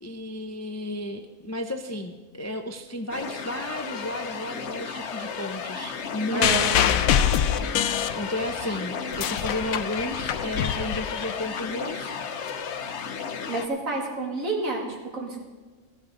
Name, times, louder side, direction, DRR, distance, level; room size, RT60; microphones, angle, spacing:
voice 1, 0.0-7.8 8.1-12.2, left 1 dB, 25° left, 6 dB, 0.4 m, -33 dB
sound 1, 3.1-13.7, left 6 dB, 60° left, 1.1 m, -33 dB
voice 2, 6.3-6.7 13.5-15.4, right 2 dB, 75° right, -2 dB, 2.9 m, -29 dB
sound 2, 6.4-8.6 9.0-11.6 12.5-12.6, left 9 dB, 90° left, 1.1 m, -24 dB
15.0 x 14.0 x 3.8 m, 1.3 s
omnidirectional pair, 1.4 m